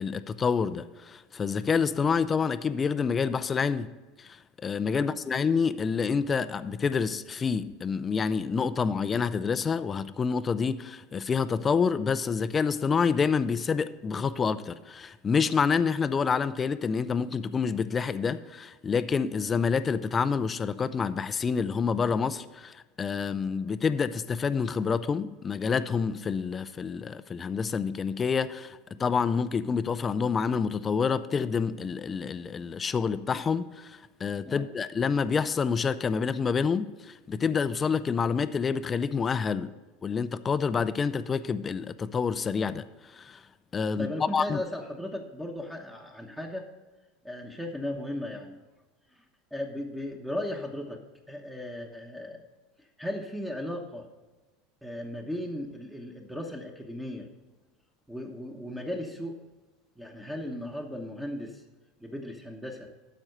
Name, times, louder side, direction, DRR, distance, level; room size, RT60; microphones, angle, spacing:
voice 1, 0.0-3.9 4.2-39.7 40.0-43.4 43.7-44.1 44.3-44.6, left 5 dB, 25° left, 0.4 m, -28 dB
voice 2, 44.0-46.7 47.2-48.6 49.1-49.2 49.5-51.0 51.3-52.4 52.8-54.1 54.8-57.3 58.1-59.3 60.0-61.6 62.0-62.9, left 1 dB, 5° right, 1.0 m, -36 dB
12.5 x 4.4 x 6.5 m
supercardioid pair, 125°, 0 cm